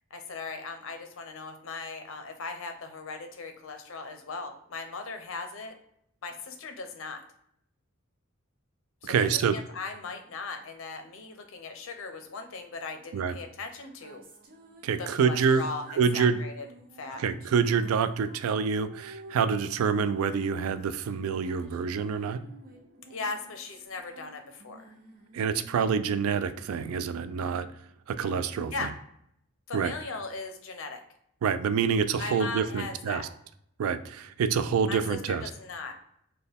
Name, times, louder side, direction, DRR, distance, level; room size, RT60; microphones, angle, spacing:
voice 1, 0.1-5.7 6.2-7.2 9.0-14.2 15.0-16.7 16.9-17.2 23.1-24.9 28.7-28.9 29.7-31.0 32.2-33.3 34.9-35.9, left 4 dB, 65° left, 6 dB, 0.6 m, -38 dB
voice 2, 9.0-9.6 13.1-13.4 14.8-15.6 16.0-16.4 17.2-22.4 25.3-27.7 28.1-28.9 29.7-29.9 31.4-33.3 33.8-35.5, right 6 dB, 85° right, 12 dB, 0.3 m, -27 dB
sound 1, 13.7-27.4, right 1 dB, 45° right, 0.6 m, -52 dB
4.2 x 2.2 x 3.4 m, 0.72 s
head